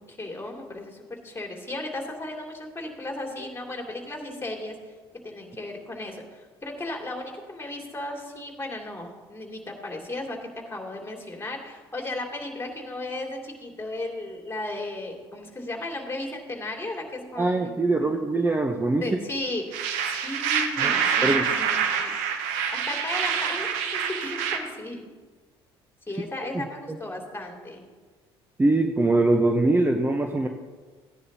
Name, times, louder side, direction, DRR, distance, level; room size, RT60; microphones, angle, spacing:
voice 1, 0.0-4.8 5.2-18.2 19.0-25.1 26.1-27.8, left 2 dB, 20° left, 1 dB, 2.7 m, -35 dB
voice 2, 17.4-19.1 20.8-20.9 21.2-21.5 26.5-26.6 28.6-30.5, right 2 dB, 15° right, 4 dB, 0.9 m, -22 dB
sound 1, 19.7-24.6, right 7 dB, 70° right, 1.1 m, -26 dB
16.0 x 9.9 x 2.8 m, 1.4 s
hypercardioid pair, 60°, 13 cm